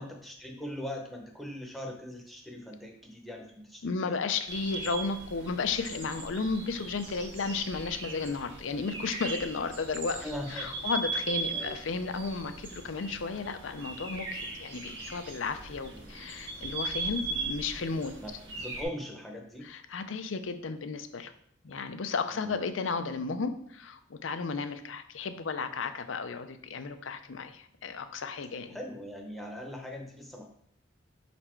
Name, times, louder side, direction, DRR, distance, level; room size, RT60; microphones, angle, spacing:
voice 1, 0.0-4.2 10.2-10.8 11.5-11.8 15.9-16.3 18.2-19.7 22.3-22.6 28.7-30.5, equal, ahead, 0 dB, 0.8 m, -41 dB
voice 2, 3.8-10.3 10.5-18.1 19.6-21.3 21.6-28.8, left 4 dB, 85° left, 9 dB, 0.5 m, -34 dB
sound 1, 4.5-18.8, right 3 dB, 70° right, 1.5 m, -39 dB
5.4 x 4.2 x 4.4 m, 0.70 s
head